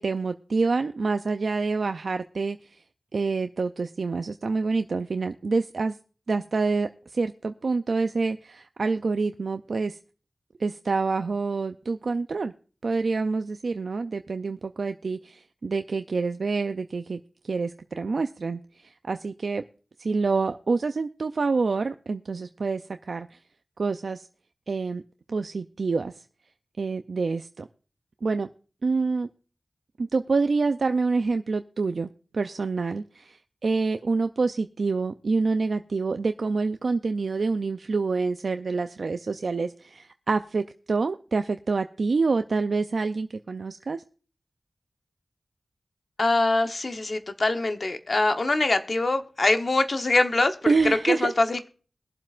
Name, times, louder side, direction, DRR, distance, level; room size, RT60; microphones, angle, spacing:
voice 1, 0.0-2.8 3.1-6.0 6.3-10.0 10.6-12.5 12.8-19.6 20.0-23.4 23.8-24.3 24.7-25.0 25.3-26.2 26.8-27.7 28.2-28.5 28.8-29.3 30.0-44.0 50.7-51.3, right 4 dB, 75° right, 8 dB, 0.4 m, -27 dB
voice 2, 46.2-50.5 51.0-51.7, left 2 dB, 55° left, 7 dB, 1.0 m, -23 dB
22.0 x 7.4 x 2.5 m, 0.39 s
wide cardioid pair, 60°, 0 cm